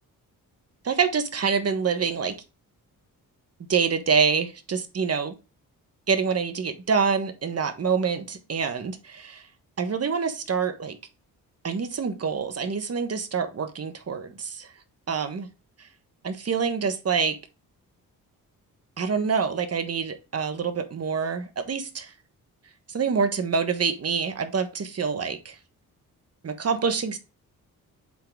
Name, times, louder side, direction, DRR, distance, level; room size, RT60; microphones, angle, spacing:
voice 1, 0.8-2.3 3.7-5.3 6.1-9.4 9.8-11.0 11.6-14.7 15.1-15.5 16.2-17.4 19.0-22.1 22.9-25.5 26.4-27.2, right 6 dB, 40° right, 9 dB, 1.2 m, -26 dB
7.6 x 3.9 x 3.5 m, 0.31 s
cardioid pair, 75°, 36 cm